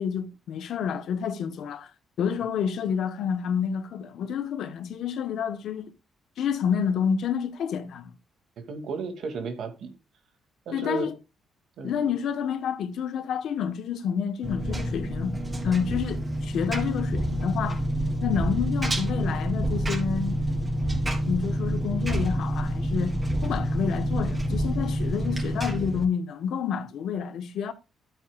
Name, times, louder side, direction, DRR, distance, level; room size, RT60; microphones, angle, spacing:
voice 1, 0.0-1.9 2.2-5.9 6.4-8.1 10.7-11.1 11.8-15.4 15.6-17.8 18.2-20.4 21.3-23.1 23.4-27.7, left 7 dB, 70° left, 1.1 m, -29 dB
voice 2, 8.6-9.9 10.7-11.1 11.8-12.0, right 4 dB, 70° right, 2.3 m, -33 dB
Engine, 14.4-26.0, equal, 25° right, 3.7 m, -27 dB
12.5 x 8.9 x 2.4 m
cardioid pair, 90°, 0 cm